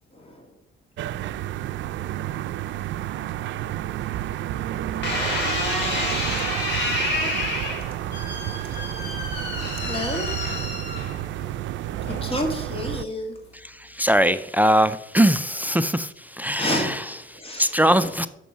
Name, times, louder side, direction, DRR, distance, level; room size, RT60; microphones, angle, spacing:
voice 1, 0.1-0.5 4.7-5.2 6.6-6.7 8.5-8.6 9.6-10.4 12.2-13.4 16.6-17.0 17.3-17.7 18.0-18.1, left 1 dB, 30° left, 3 dB, 2.2 m, -30 dB
sound 1, 1.0-13.0, right 13 dB, 70° right, 0.4 m, -30 dB
sound 2, 5.0-11.4 12.1-12.5, left 2 dB, 60° left, 3.8 m, -29 dB
voice 2, 13.5-18.3, equal, 10° right, 12 dB, 0.4 m, -22 dB
6.8 x 6.2 x 6.3 m, 0.83 s
cardioid pair, 90°, 20 cm